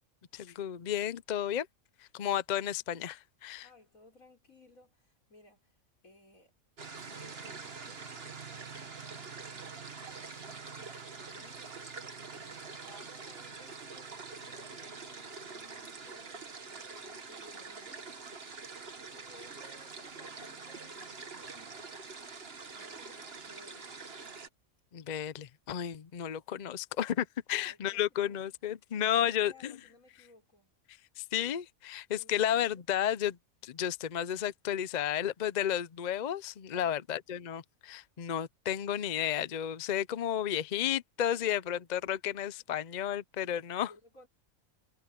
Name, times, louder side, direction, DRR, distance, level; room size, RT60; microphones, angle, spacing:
voice 1, 0.3-1.7 2.0-3.7 24.9-29.7 31.2-33.4 33.6-43.9, left 10 dB, 50° left, 0.5 m, -32 dB
voice 2, 3.6-5.8 6.0-6.5 6.8-18.4 19.1-21.1 21.4-21.8 22.7-23.9 27.5-28.4 29.1-30.7 32.1-32.6 36.7-37.0 41.3-41.4 42.6-42.8 43.8-44.3, left 2 dB, 80° left, 5.7 m, -60 dB
sound 1, 6.8-24.5, right 4 dB, 45° right, 1.7 m, -45 dB
omnidirectional pair, 1.4 m